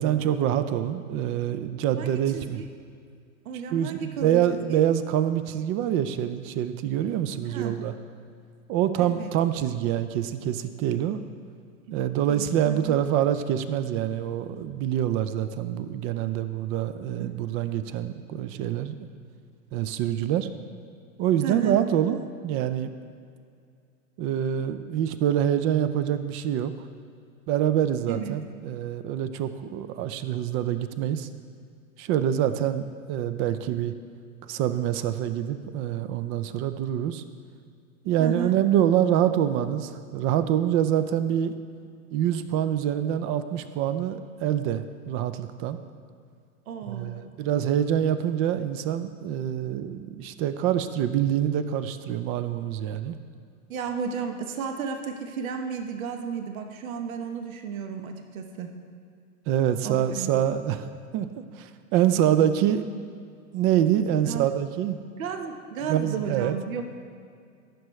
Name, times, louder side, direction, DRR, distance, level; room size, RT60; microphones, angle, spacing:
voice 1, 0.0-2.6 3.7-7.9 8.7-11.2 11.9-18.9 19.7-20.5 21.2-22.2 22.4-22.9 24.2-26.7 27.5-31.3 32.0-33.9 34.4-37.2 38.0-41.5 42.1-45.8 46.9-53.2 59.5-61.3 61.5-62.9 63.5-65.0 65.9-66.6, right 10 dB, 35° right, 11 dB, 0.5 m, -26 dB
voice 2, 2.0-2.7 3.4-4.4 4.7-4.8 7.4-7.7 9.0-9.3 12.3-13.0 17.2-17.3 21.4-21.8 28.1-28.3 38.2-38.6 46.7-47.2 53.7-58.7 59.8-60.3 64.2-64.5 65.2-66.8, right 6 dB, 75° right, 5 dB, 1.0 m, -33 dB
14.5 x 6.4 x 3.2 m, 2.3 s
hypercardioid pair, 105°, 42 cm